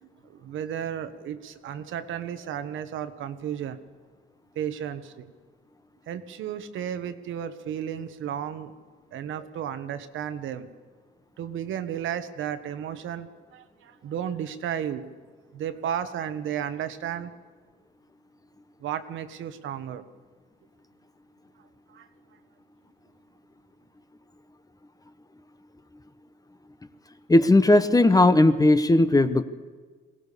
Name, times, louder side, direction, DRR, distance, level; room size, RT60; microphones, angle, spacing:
voice 1, 0.0-3.8 4.5-5.3 6.1-8.7 9.1-10.7 11.4-15.0 15.5-17.3 18.8-20.0 21.9-22.1, right 9 dB, 80° right, 10 dB, 1.4 m, -33 dB
voice 2, 27.3-29.4, left 2 dB, 20° left, 11 dB, 1.1 m, -17 dB
22.0 x 17.5 x 6.9 m, 1.4 s
cardioid pair, 90°, 20 cm